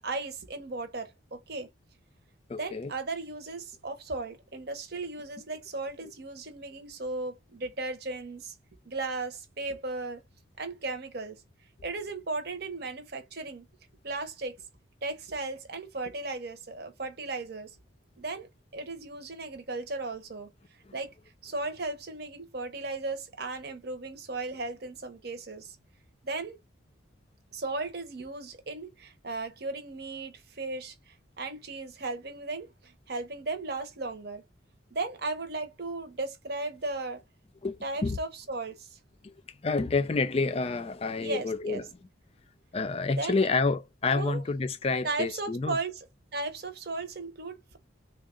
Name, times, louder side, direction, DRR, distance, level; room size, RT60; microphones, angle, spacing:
voice 1, 0.0-1.7 2.6-8.5 8.8-10.2 10.6-11.4 11.8-13.7 14.0-14.6 15.0-17.8 18.2-20.5 20.9-21.1 21.4-25.8 26.2-26.6 27.5-34.4 34.9-37.2 37.8-39.0 41.2-41.8 43.2-43.5 44.1-44.4 45.0-46.0 46.3-47.8, right 3 dB, 50° right, 0.9 m, -36 dB
voice 2, 2.5-2.9 6.0-6.1 20.9-21.0 37.6-38.2 39.2-39.3 39.6-41.9 42.7-45.8, left 3 dB, 30° left, 0.4 m, -29 dB
3.6 x 2.3 x 3.6 m
head